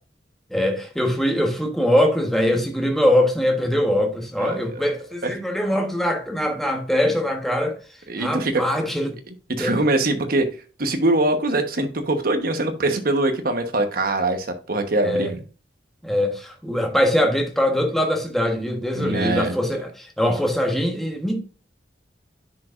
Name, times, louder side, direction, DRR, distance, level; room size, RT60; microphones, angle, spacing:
voice 1, 0.5-7.8 8.2-9.2 9.6-9.8 15.0-15.3 16.0-21.4, left 1 dB, ahead, 1.3 m, -22 dB
voice 2, 4.4-4.8 5.2-5.3 8.1-8.6 9.5-10.5 10.8-15.4 18.9-19.5, right 2 dB, 55° right, 1.1 m, -23 dB
10.0 x 5.0 x 2.5 m
head